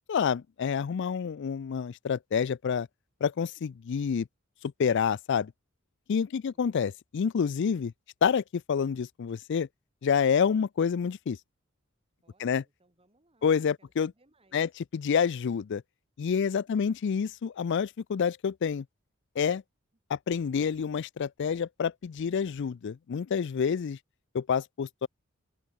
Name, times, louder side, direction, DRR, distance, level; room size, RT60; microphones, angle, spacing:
voice 1, 0.1-2.9 3.2-4.2 4.8-5.5 6.1-7.9 8.2-9.7 10.0-11.4 12.4-12.6 13.4-14.1 14.5-15.8 16.2-18.8 19.4-19.6 20.1-24.0 24.3-25.1, left 6 dB, 60° left, 0.4 m, -28 dB
voice 2, 6.3-6.7 12.2-13.5 13.8-14.6 16.6-17.0, right 2 dB, 30° right, 4.0 m, -68 dB
open air
head